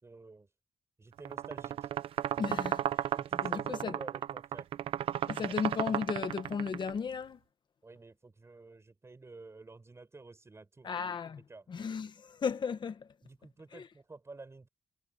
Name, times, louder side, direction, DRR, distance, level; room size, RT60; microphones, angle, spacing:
voice 1, 0.0-0.5 1.0-1.9 2.3-2.4 3.1-4.7 7.8-10.9 11.4-11.7 13.2-14.7, right 3 dB, 30° right, 6.3 m, -50 dB
sound 1, 1.2-6.9, right 11 dB, 80° right, 0.7 m, -34 dB
voice 2, 2.4-2.8 3.4-3.9 5.3-7.4 10.8-11.4 11.7-13.1 13.7-13.9, left 6 dB, 55° left, 1.4 m, -35 dB
cardioid pair, 70°, 9 cm